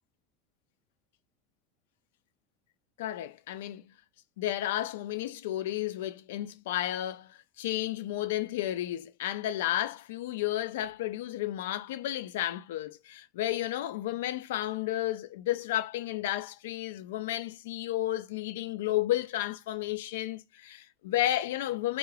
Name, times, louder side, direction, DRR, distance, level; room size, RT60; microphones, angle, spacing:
voice 1, 3.0-3.9 4.4-22.0, left 13 dB, 90° left, 0.4 m, -32 dB
3.6 x 3.3 x 2.3 m
supercardioid pair, 115°, 0 cm